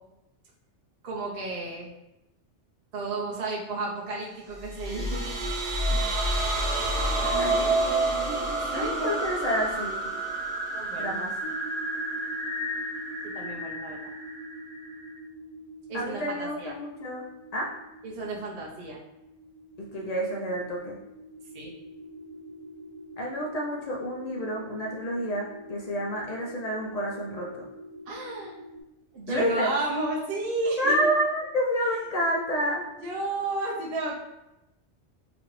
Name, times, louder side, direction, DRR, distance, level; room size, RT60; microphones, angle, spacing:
voice 1, 1.0-1.9 2.9-5.2 8.7-9.6 10.7-11.2 13.3-14.1 15.9-16.7 18.0-19.0 21.5-21.7 28.1-28.5 29.1-30.9 33.0-34.2, right 2 dB, 60° right, -3 dB, 0.8 m, -32 dB
sound 1, 4.5-15.2, right 2 dB, 90° right, 1.1 m, -29 dB
voice 2, 7.1-7.9 8.7-10.1 11.0-11.3 15.9-17.3 17.5-17.7 19.8-21.0 23.2-27.6 29.3-29.7 30.8-32.9, equal, 60° left, -2 dB, 0.4 m, -29 dB
sound 2, 11.4-28.8, equal, 30° left, 0.7 m, -45 dB
2.9 x 2.5 x 3.0 m, 0.93 s
omnidirectional pair, 1.2 m